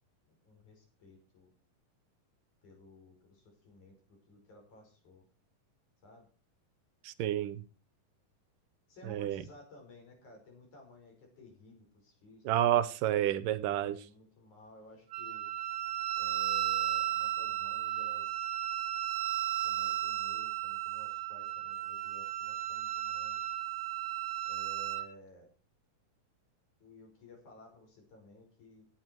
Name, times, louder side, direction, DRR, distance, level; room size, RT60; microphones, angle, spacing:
voice 1, 0.3-1.5 2.6-5.3 6.0-6.3 8.9-12.9 13.8-15.5 16.1-18.6 19.6-23.5 24.5-25.5 26.8-28.9, left 2 dB, 60° left, 6.8 m, -56 dB
voice 2, 7.0-7.6 9.1-9.4 12.5-14.0, right 12 dB, 80° right, 2.3 m, -29 dB
Wind instrument woodwind instrument, 15.1-25.1, right 13 dB, 60° right, 1.9 m, -34 dB
17.5 x 8.9 x 4.5 m
omnidirectional pair, 3.9 m